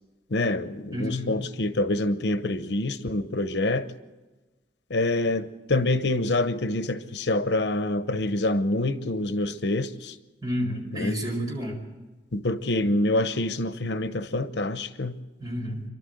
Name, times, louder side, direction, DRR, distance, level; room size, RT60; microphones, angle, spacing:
voice 1, 0.3-3.9 4.9-10.1 10.9-11.2 12.3-15.2, left 2 dB, 85° left, 0.9 m, -26 dB
voice 2, 0.9-1.3 10.4-11.8 15.4-15.8, equal, 20° right, 4.8 m, -30 dB
28.0 x 12.0 x 7.9 m
head